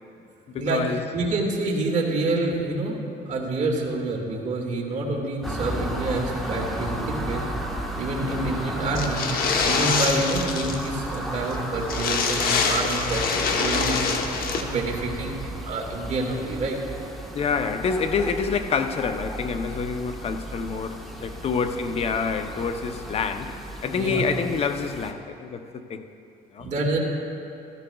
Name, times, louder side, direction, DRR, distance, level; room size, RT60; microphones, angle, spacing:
voice 1, 0.5-1.0 8.3-8.6 17.3-26.1 26.5-26.7, left 5 dB, 35° left, 8 dB, 0.6 m, -27 dB
voice 2, 1.1-3.0 3.3-7.4 8.0-9.3 9.6-14.0 14.5-16.8 23.9-24.2 26.6-27.0, right 2 dB, 45° right, -1 dB, 2.0 m, -27 dB
sound 1, 5.4-25.1, right 1 dB, ahead, 1.2 m, -34 dB
sound 2, 8.9-10.9 11.1-11.2 11.5-11.6 11.9-14.6, left 5 dB, 60° left, 1.0 m, -25 dB
15.0 x 13.5 x 2.3 m, 2.7 s
cardioid pair, 110°, 17 cm